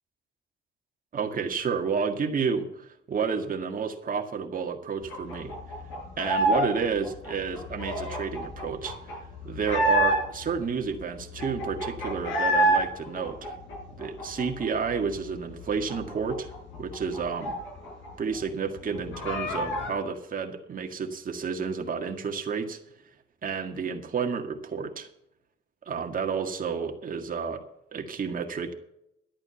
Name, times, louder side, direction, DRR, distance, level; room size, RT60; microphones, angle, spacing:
voice 1, 1.1-5.6 6.2-9.2 9.4-13.6 14.0-16.5 16.8-17.6 18.2-22.8 23.4-25.1 25.9-27.6 27.9-28.7, right 6 dB, 45° right, 4 dB, 1.9 m, -30 dB
sound 1, 5.1-6.7 7.0-10.5 10.9-11.0 11.2-12.8 13.1-14.9 15.2-15.3 15.6-18.1 18.3-18.4 18.8-19.9, right 1 dB, 90° left, 5.2 m, -27 dB
12.0 x 8.8 x 7.1 m, 0.80 s
cardioid pair, 90°, 20 cm